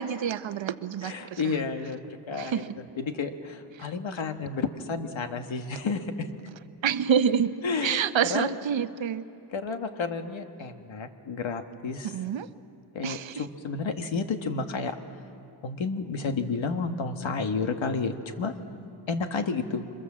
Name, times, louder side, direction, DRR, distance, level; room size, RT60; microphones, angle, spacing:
voice 1, 0.0-1.5 2.3-2.8 3.8-3.9 6.8-7.6 7.8-9.3 12.0-12.5 13.0-13.5, right 7 dB, 65° right, 12 dB, 0.9 m, -28 dB
voice 2, 1.0-6.3 7.6-8.0 8.3-8.5 9.5-12.1 12.9-15.0 15.6-18.5 19.1-19.8, left 4 dB, 65° left, 7 dB, 1.7 m, -31 dB
28.0 x 24.5 x 7.4 m, 2.6 s
wide cardioid pair, 105°, 50 cm